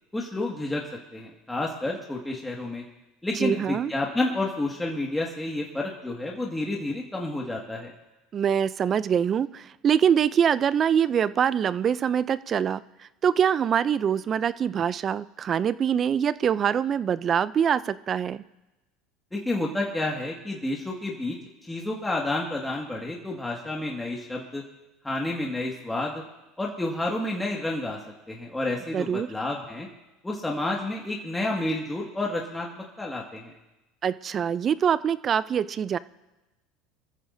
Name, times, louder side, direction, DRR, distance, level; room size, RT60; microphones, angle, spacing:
voice 1, 0.1-0.8 1.1-2.8 3.2-7.9 19.3-24.6 25.0-26.2 26.6-28.0 28.3-29.9 30.2-33.5, left 2 dB, 10° left, -2 dB, 1.9 m, -30 dB
voice 2, 3.4-3.9 8.3-18.4 28.9-29.3 34.0-36.0, right 8 dB, 40° right, 17 dB, 0.4 m, -24 dB
24.0 x 14.5 x 2.7 m, 1.0 s
supercardioid pair, 95°, 0 cm